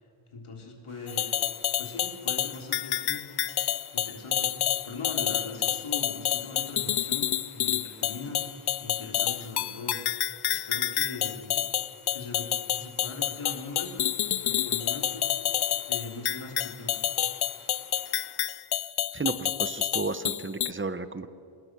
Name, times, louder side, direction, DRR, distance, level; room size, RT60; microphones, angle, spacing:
voice 1, 0.3-1.3 1.8-3.2 3.9-8.4 8.8-10.0 10.5-11.5 12.1-12.5 12.8-14.0 14.4-15.3 15.9-17.0, left 3 dB, 85° left, 1 dB, 3.4 m, -40 dB
sound 1, 0.9-18.4, right 2 dB, 40° right, 4.2 m, -56 dB
sound 2, 1.1-20.7, left 11 dB, 55° left, 0.5 m, -29 dB
voice 2, 19.1-21.3, right 3 dB, 25° right, 12 dB, 0.9 m, -32 dB
27.0 x 19.5 x 6.1 m, 2.5 s
wide cardioid pair, 105°, 49 cm